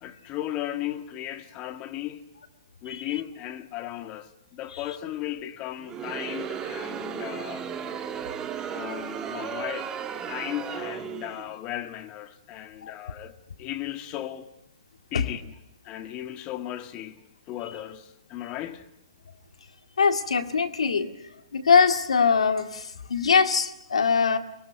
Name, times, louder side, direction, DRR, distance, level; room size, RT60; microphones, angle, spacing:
voice 1, 0.0-2.3 2.8-7.7 8.7-14.5 15.1-15.6 15.8-17.2 17.5-18.9, left 13 dB, 30° left, 1.8 m, -36 dB
Crowd, 5.8-11.5, right 8 dB, 20° right, 1.4 m, -35 dB
voice 2, 20.0-21.1 21.5-24.4, left 5 dB, 80° left, 2.1 m, -22 dB
23.0 x 19.5 x 9.7 m
hypercardioid pair, 130°, 3 cm